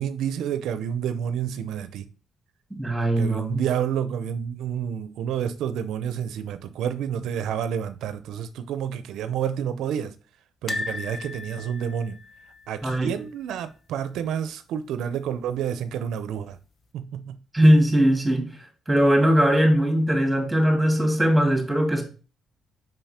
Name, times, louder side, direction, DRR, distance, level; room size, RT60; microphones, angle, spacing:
voice 1, 0.0-2.0 3.2-10.1 10.6-12.2 12.7-16.6 16.9-17.4, right 8 dB, 85° right, 0.6 m, -29 dB
voice 2, 2.7-3.6 12.8-13.1 17.5-18.5 18.9-22.0, equal, 5° right, 2.4 m, -20 dB
sound 1, 10.7-13.7 14.0-14.2 14.4-14.5 15.8-16.3 16.8-16.9, left 3 dB, 40° left, 0.8 m, -36 dB
5.7 x 5.4 x 4.3 m
cardioid pair, 90°, 0 cm